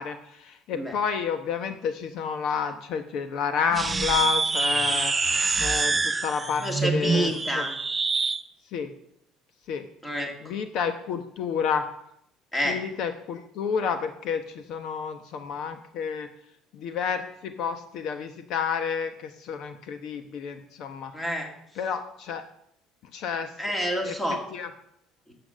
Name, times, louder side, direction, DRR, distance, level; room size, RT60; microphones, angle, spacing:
voice 1, 0.0-7.3 7.6-7.7 8.7-8.9 9.7-9.9 10.4-11.9 12.6-16.3 16.7-21.1 21.8-22.5 23.1-23.5 24.0-24.7, left 6 dB, 55° left, 8 dB, 1.0 m, -30 dB
sound 1, 3.7-8.4, right 4 dB, 15° right, 0.4 m, -26 dB
voice 2, 6.6-7.7 10.0-10.3 12.5-12.8 21.1-21.5 23.6-24.4 25.3-25.4, equal, 5° left, 2 dB, 2.1 m, -28 dB
13.0 x 7.9 x 6.4 m, 0.75 s
cardioid pair, 145°, 0 cm